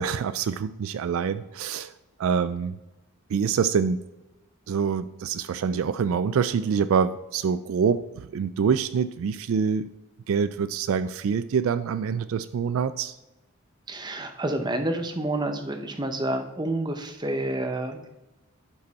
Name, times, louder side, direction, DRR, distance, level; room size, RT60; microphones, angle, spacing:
voice 1, 0.0-1.9 2.2-2.8 3.3-4.0 4.7-9.9 10.3-13.1, right 6 dB, 65° right, 13 dB, 0.3 m, -25 dB
voice 2, 13.9-18.1, right 1 dB, 20° right, 6 dB, 0.7 m, -29 dB
11.5 x 5.2 x 4.1 m, 1.0 s
head